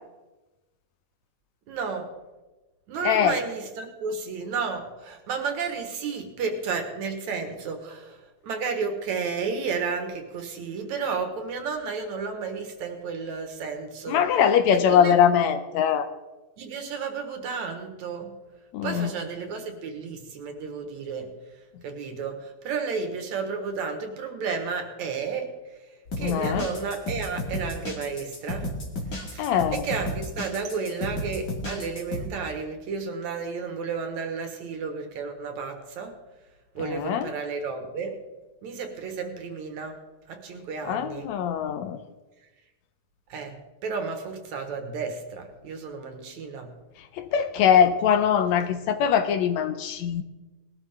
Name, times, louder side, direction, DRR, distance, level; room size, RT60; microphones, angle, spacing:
voice 1, 1.7-2.2 2.9-14.3 14.7-15.2 16.6-18.4 18.8-21.4 21.8-25.8 26.2-28.7 29.2-29.5 29.7-36.2 36.7-38.2 38.6-40.0 40.3-41.3 43.3-46.7, right 5 dB, 70° right, 5 dB, 2.8 m, -32 dB
voice 2, 3.1-3.4 14.1-16.1 18.7-19.1 26.2-26.6 29.4-29.8 36.8-37.3 40.9-42.0 47.2-50.2, left 8 dB, 75° left, 10 dB, 1.8 m, -22 dB
sound 1, 26.1-32.3, left 1 dB, 35° left, 2.5 m, -33 dB
19.5 x 13.0 x 3.6 m, 1.1 s
omnidirectional pair, 3.5 m